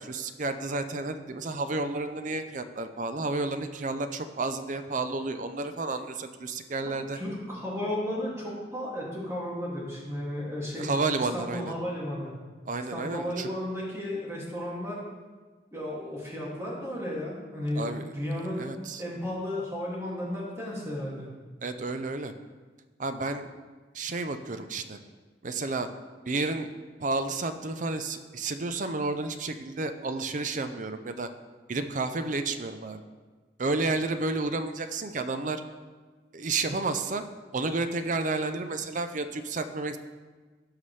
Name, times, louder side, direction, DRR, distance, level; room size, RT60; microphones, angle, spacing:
voice 1, 0.0-7.2 10.8-11.7 12.7-13.5 17.7-18.1 18.6-19.0 21.6-22.3 23.0-23.5 23.9-25.0 25.4-25.9 26.3-26.7 27.0-31.3 31.7-33.0 33.6-35.6 36.3-37.2 37.5-40.0, right 3 dB, 45° right, 9 dB, 0.6 m, -31 dB
voice 2, 7.1-10.9 11.2-12.3 12.9-15.0 15.7-18.7 19.0-21.3, left 1 dB, 15° right, -5 dB, 2.3 m, -34 dB
16.0 x 5.8 x 3.3 m, 1.4 s
head